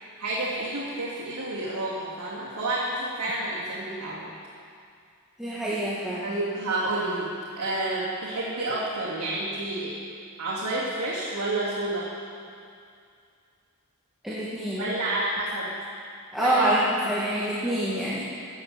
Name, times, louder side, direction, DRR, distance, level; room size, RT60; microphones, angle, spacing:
voice 1, 0.2-4.3 6.2-7.3 7.6-10.0 10.4-12.1 14.8-15.7 16.4-16.8 17.0-17.1, right 2 dB, 80° right, -9 dB, 2.9 m, -29 dB
voice 2, 5.4-6.3 14.2-14.9 16.3-18.2, right 1 dB, ahead, -8 dB, 1.8 m, -26 dB
16.0 x 9.1 x 6.8 m, 2.4 s
head